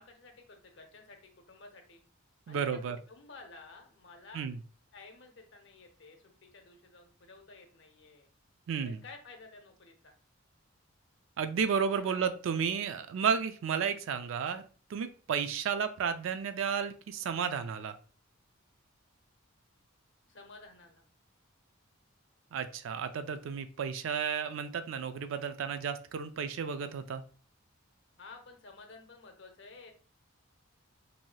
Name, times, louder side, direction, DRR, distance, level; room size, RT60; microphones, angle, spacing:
voice 1, 0.0-2.0 2.5-4.4 4.9-8.3 8.8-10.1 12.0-12.2 20.3-21.0 28.2-29.9, left 3 dB, 60° left, 4 dB, 0.6 m, -53 dB
voice 2, 2.5-3.0 4.3-4.6 8.7-9.0 11.4-14.6 14.9-17.9 22.5-27.2, right 6 dB, 65° right, 10 dB, 0.3 m, -32 dB
3.1 x 2.7 x 2.2 m, 0.40 s
head